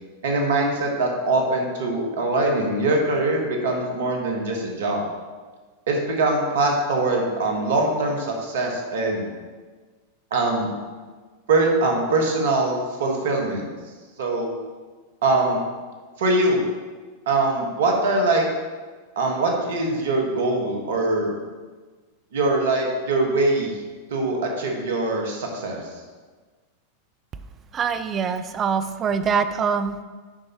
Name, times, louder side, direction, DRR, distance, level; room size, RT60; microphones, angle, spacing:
voice 1, 0.2-5.0 5.9-9.3 10.3-10.7 11.5-13.7 14.2-14.5 15.2-15.6 16.2-16.6 17.2-18.4 19.1-21.3 22.3-23.7 24.1-25.9, right 2 dB, 70° right, 1 dB, 1.5 m, -22 dB
voice 2, 27.7-30.0, right 6 dB, 30° right, 10 dB, 0.4 m, -24 dB
8.9 x 5.4 x 3.0 m, 1.4 s
hypercardioid pair, 95°, 0 cm